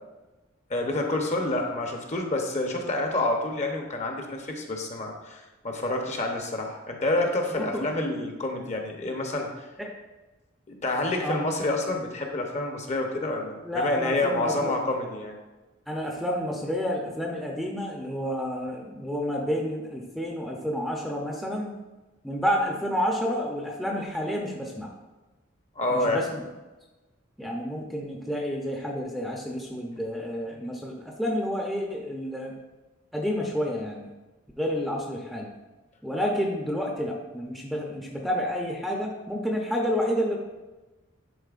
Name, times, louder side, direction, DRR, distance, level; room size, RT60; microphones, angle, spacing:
voice 1, 0.7-9.5 10.7-15.3 25.8-26.2, left 2 dB, 35° left, 2 dB, 0.8 m, -28 dB
voice 2, 7.5-7.8 9.8-9.9 11.2-11.4 13.6-14.7 15.9-21.7 22.2-24.9 25.9-26.4 27.4-32.5 33.1-34.1 34.6-35.5 36.0-40.4, equal, ahead, -1 dB, 0.6 m, -30 dB
10.0 x 4.3 x 2.5 m, 1.1 s
head